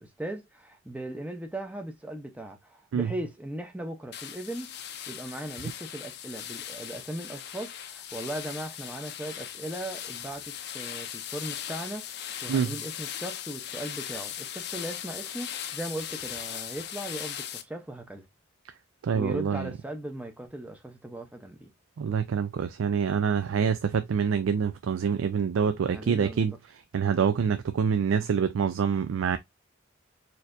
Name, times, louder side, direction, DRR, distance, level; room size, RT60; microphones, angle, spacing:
voice 1, 0.0-18.3 19.1-21.7 25.9-26.4, right 1 dB, 5° right, 0.6 m, -38 dB
sound 1, 4.1-17.6, left 10 dB, 50° left, 0.5 m, -38 dB
voice 2, 19.0-19.7 22.0-26.5 26.9-29.4, right 7 dB, 80° right, 0.3 m, -26 dB
4.2 x 2.7 x 2.4 m
head